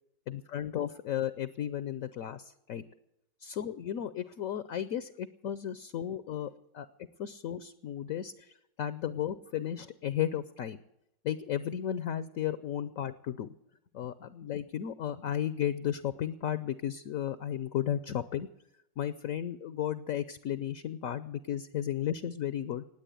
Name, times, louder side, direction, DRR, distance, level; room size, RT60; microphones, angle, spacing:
voice 1, 0.3-2.8 3.4-6.9 7.2-8.5 8.8-10.8 11.2-13.5 13.9-18.5 19.0-22.8, left 10 dB, 60° left, 14 dB, 0.9 m, -34 dB
19.5 x 8.4 x 8.4 m, 0.82 s
omnidirectional pair, 2.0 m